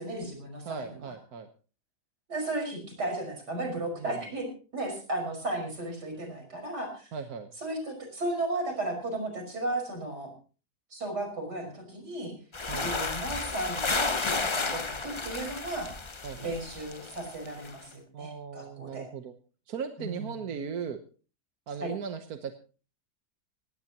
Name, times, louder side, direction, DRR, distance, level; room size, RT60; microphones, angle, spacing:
voice 1, 0.0-1.1 2.3-4.5 4.7-7.1 7.6-10.3 10.9-12.3 12.8-15.9 16.4-19.1 20.0-20.3 21.8-21.9, right 2 dB, 85° right, 4 dB, 6.0 m, -35 dB
voice 2, 0.6-1.5 4.0-4.2 7.1-7.5 12.7-12.9 16.2-16.5 18.1-19.3 19.7-21.0 21.7-22.5, right 6 dB, 65° right, 7 dB, 1.5 m, -37 dB
sound 1, 12.5-17.7, left 3 dB, 25° left, 0.6 m, -32 dB
19.0 x 17.0 x 3.0 m, 0.37 s
omnidirectional pair, 1.7 m